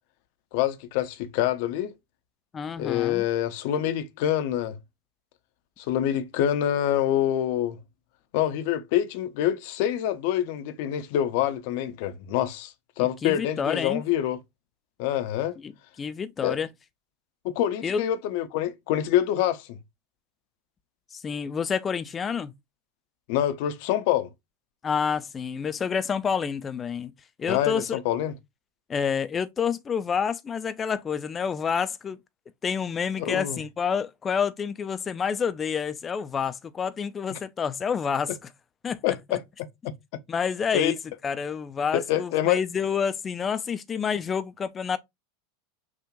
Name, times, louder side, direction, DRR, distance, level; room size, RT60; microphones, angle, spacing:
voice 1, 0.5-1.9 2.8-4.8 5.8-7.8 8.3-14.4 15.0-15.6 16.4-16.6 17.4-19.8 23.3-24.3 27.5-28.3 33.2-33.6 37.3-37.4 39.0-39.4 40.7-40.9 41.9-42.6, left 11 dB, 55° left, 0.8 m, -26 dB
voice 2, 2.5-3.2 13.0-14.0 15.6-15.7 16.0-16.7 17.8-18.0 21.1-22.5 24.8-27.1 27.4-28.0 28.9-32.2 32.6-38.3 38.8-39.4 40.3-41.0 41.2-45.0, left 6 dB, 25° left, 0.6 m, -28 dB
6.0 x 2.5 x 3.0 m
figure-of-eight pair, 85°, 0 cm